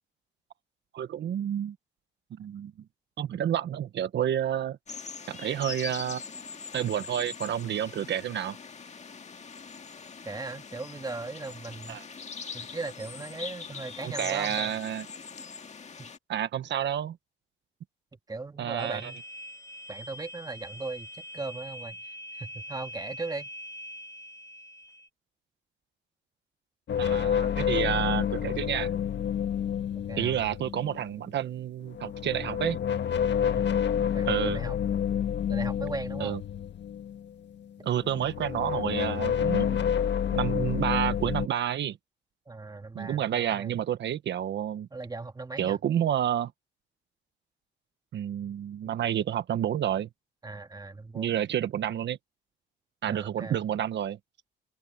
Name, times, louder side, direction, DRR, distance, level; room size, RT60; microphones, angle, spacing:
voice 1, 0.9-1.7 2.4-2.7 3.2-4.8 5.3-6.2 6.7-8.6 11.9-12.0 14.0-15.1 16.3-17.2 18.6-19.1 27.0-28.9 30.2-32.8 34.3-34.6 36.2-36.4 37.8-39.8 40.3-42.0 42.9-44.9 45.6-46.5 48.1-50.1 51.1-52.2 53.0-54.2, right 10 dB, 65° right, 1.2 m, -29 dB
sound 1, 4.9-16.2, left 5 dB, 35° left, 1.8 m, -42 dB
voice 2, 10.3-12.0 12.5-14.7 16.0-16.1 18.3-19.2 19.9-23.5 30.0-30.4 33.5-33.8 34.1-34.8 35.5-36.4 42.5-43.7 44.9-45.8 48.8-48.9 50.4-51.3 53.1-53.6, right 3 dB, 20° right, 1.8 m, -38 dB
sound 2, 18.8-25.1, equal, 15° left, 1.6 m, -43 dB
sound 3, 26.9-31.1 31.9-37.6 38.0-41.5, left 8 dB, 60° left, 1.7 m, -29 dB
cardioid pair, 90°, 20 cm